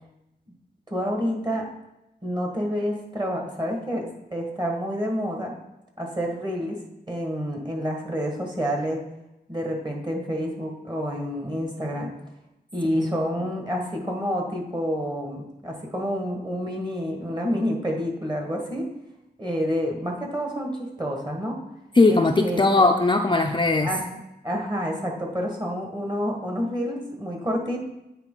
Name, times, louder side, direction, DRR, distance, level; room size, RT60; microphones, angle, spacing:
voice 1, 0.9-1.6 2.2-5.5 6.0-6.8 7.1-9.0 9.5-12.1 12.7-18.9 19.4-21.6 22.1-22.8 23.8-24.2 24.4-27.8, equal, 25° right, 1 dB, 1.6 m, -28 dB
voice 2, 21.9-23.9, left 3 dB, 25° left, 3 dB, 0.5 m, -19 dB
9.0 x 4.0 x 3.9 m, 0.93 s
wide cardioid pair, 60°, 18 cm